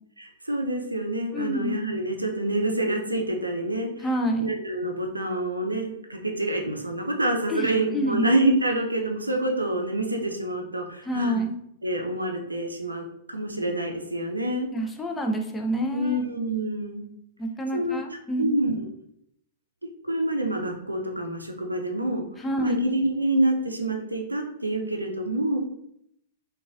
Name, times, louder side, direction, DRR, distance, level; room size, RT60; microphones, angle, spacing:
voice 1, 0.2-3.9 4.4-11.4 11.8-14.7 15.9-17.1 17.7-18.0 18.4-18.8 20.1-22.2 22.6-25.6, right 1 dB, 90° right, 3 dB, 0.5 m, -27 dB
voice 2, 1.3-1.8 4.0-4.5 7.5-8.3 11.0-11.6 14.7-16.2 17.4-18.4 22.4-22.8, equal, 15° left, 2 dB, 0.4 m, -28 dB
3.8 x 2.3 x 2.4 m, 0.74 s
figure-of-eight pair, 105°, 0 cm